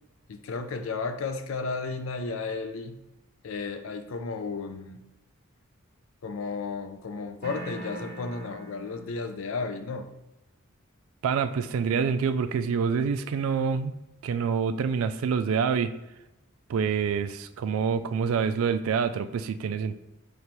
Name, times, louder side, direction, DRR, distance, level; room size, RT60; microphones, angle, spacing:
voice 1, 0.3-3.0 3.4-5.0 6.2-10.1, left 4 dB, 70° left, 9 dB, 0.4 m, -33 dB
sound 1, 7.4-9.4, right 1 dB, 40° right, 0.9 m, -41 dB
voice 2, 11.2-13.9 14.2-15.9 16.7-20.0, right 6 dB, 75° right, 11 dB, 0.3 m, -26 dB
5.1 x 3.2 x 3.0 m, 0.94 s
head